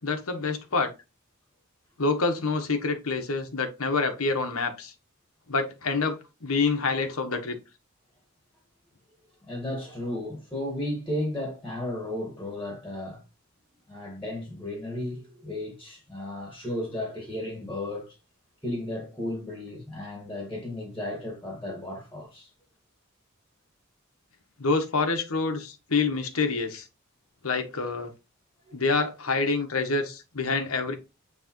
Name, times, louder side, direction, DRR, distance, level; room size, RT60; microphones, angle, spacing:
voice 1, 0.0-0.9 2.0-4.9 5.5-6.2 6.4-7.6 24.6-26.9 27.4-28.1 28.7-30.9, left 4 dB, 90° left, 1.3 m, -27 dB
voice 2, 9.5-13.2 13.9-18.2 18.6-22.5 28.7-28.8, left 1 dB, 10° left, 1.9 m, -34 dB
9.4 x 3.4 x 3.1 m
head